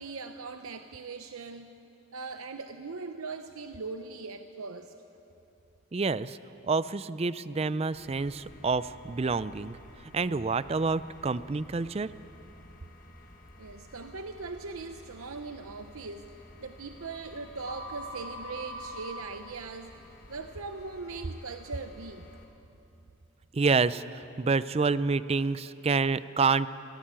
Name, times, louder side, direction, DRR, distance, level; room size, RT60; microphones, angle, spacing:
voice 1, 0.0-1.7 2.1-4.9 13.6-22.2, right 4 dB, 90° right, 7 dB, 0.7 m, -40 dB
voice 2, 5.9-6.4 6.6-9.8 10.0-12.1 23.5-26.7, right 4 dB, 30° right, 16 dB, 0.4 m, -28 dB
sound 1, 7.9-22.5, equal, 40° left, 1.5 m, -48 dB
19.0 x 17.5 x 8.9 m, 2.9 s
head